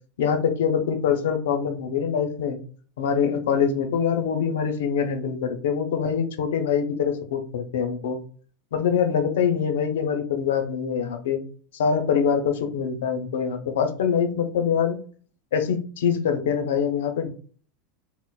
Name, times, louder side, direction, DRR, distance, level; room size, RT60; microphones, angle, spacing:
voice 1, 0.2-2.6 3.0-8.2 8.7-11.4 11.7-15.0 15.5-17.3, left 7 dB, 90° left, 7 dB, 0.6 m, -24 dB
4.2 x 2.0 x 2.3 m, 0.43 s
supercardioid pair, 150°, 0 cm